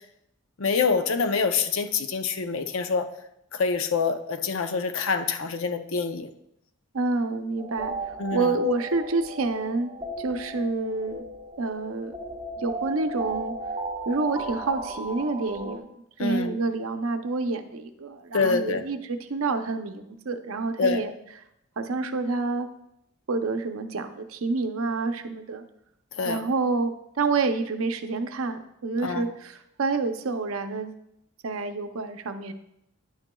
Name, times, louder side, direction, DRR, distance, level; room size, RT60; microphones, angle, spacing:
voice 1, 0.6-3.1 3.5-6.3 8.2-8.7 16.2-16.6 18.3-18.8 20.8-21.0 26.1-26.4 29.0-29.3, left 5 dB, 65° left, 8 dB, 0.6 m, -26 dB
voice 2, 6.9-9.9 10.2-11.2 11.6-12.1 12.6-13.5 14.1-15.9 16.2-21.1 21.8-22.7 23.3-25.6 26.2-30.9 31.4-32.5, right 3 dB, 70° right, 8 dB, 0.7 m, -28 dB
sound 1, 7.6-15.8, right 2 dB, 25° right, 0.7 m, -36 dB
9.7 x 8.8 x 2.3 m, 0.79 s
head